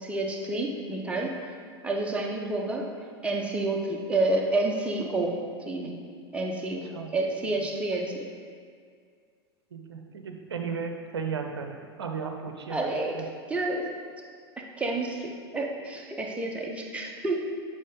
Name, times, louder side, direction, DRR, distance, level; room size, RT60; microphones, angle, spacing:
voice 1, 0.0-1.3 1.8-2.8 3.2-5.4 5.7-6.0 6.3-6.9 7.1-8.3 12.7-13.2 13.5-13.8 14.8-17.5, right 2 dB, 10° right, 0 dB, 0.7 m, -29 dB
voice 2, 9.7-13.3, right 5 dB, 70° right, 4 dB, 0.6 m, -35 dB
7.4 x 4.3 x 3.7 m, 2.1 s
figure-of-eight pair, 90°, 14 cm